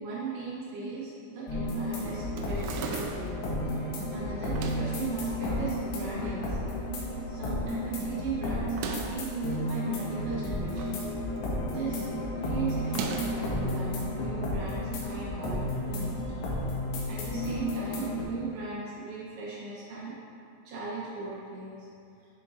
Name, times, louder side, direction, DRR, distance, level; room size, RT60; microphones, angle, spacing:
voice 1, 0.0-3.4 3.7-11.1 11.7-12.1 12.4-16.7 17.1-20.2 20.7-21.9, right 3 dB, 70° right, -8 dB, 2.8 m, -38 dB
sound 1, 1.5-18.2, left 1 dB, 75° left, 3.0 m, -32 dB
sound 2, 2.4-3.4 4.4-5.0 5.8-6.4 6.8-6.9 7.1-7.2 8.6-9.3 10.3-11.1 11.4-11.7 12.8-13.5, right 5 dB, 85° right, 2.9 m, -38 dB
10.0 x 4.5 x 2.5 m, 2.4 s
omnidirectional pair, 5.3 m